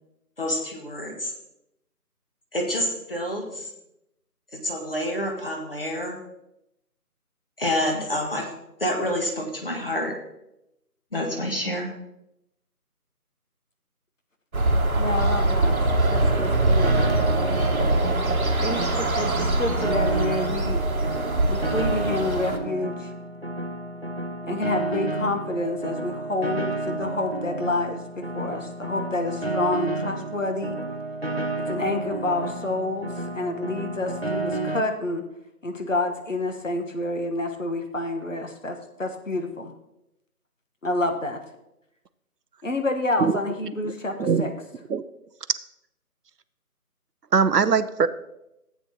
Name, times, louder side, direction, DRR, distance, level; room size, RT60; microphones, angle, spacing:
voice 1, 0.4-1.3 2.5-3.7 4.5-6.2 7.6-8.5 8.8-10.1 11.1-11.9, left 1 dB, 35° left, 0 dB, 1.7 m, -28 dB
sound 1, 14.5-22.6, right 2 dB, 65° right, 1.3 m, -23 dB
voice 2, 15.0-15.7 16.1-17.2 18.6-20.8 21.5-23.1 24.4-30.8 31.6-35.2 35.6-39.7 40.8-41.4 42.6-44.5, left 2 dB, 55° left, 5 dB, 1.3 m, -28 dB
Piano, 15.6-34.8, right 2 dB, 40° right, 0.6 m, -31 dB
voice 3, 47.3-48.1, right 5 dB, 80° right, 14 dB, 0.8 m, -21 dB
15.0 x 8.6 x 2.8 m, 0.86 s
figure-of-eight pair, 175°, 47 cm